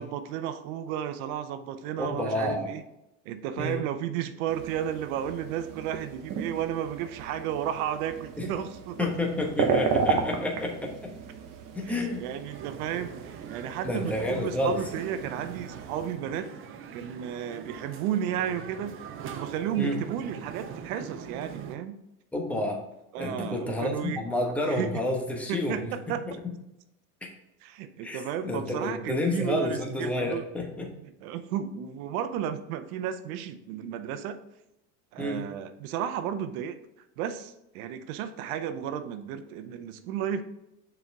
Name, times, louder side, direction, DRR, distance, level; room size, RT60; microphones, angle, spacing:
voice 1, 0.0-2.8 3.3-9.1 11.8-16.5 16.9-18.9 19.2-22.0 23.1-24.2 24.7-25.0 25.5-26.2 27.6-30.4 31.2-34.4 35.1-36.8 37.2-40.4, right 9 dB, 70° right, 10 dB, 0.8 m, -33 dB
voice 2, 2.0-2.7 3.6-3.8 8.4-8.5 9.0-11.1 11.7-12.2 13.8-14.8 19.8-20.0 22.3-22.8 23.2-25.9 26.3-26.4 28.0-30.9 35.2-35.4, left 1 dB, 5° left, 1 dB, 1.1 m, -29 dB
sound 1, 4.5-16.1, right 5 dB, 45° right, 1.2 m, -34 dB
sound 2, 12.5-21.8, right 7 dB, 30° right, 0.6 m, -43 dB
6.2 x 4.5 x 3.4 m, 0.88 s
supercardioid pair, 115°, 44 cm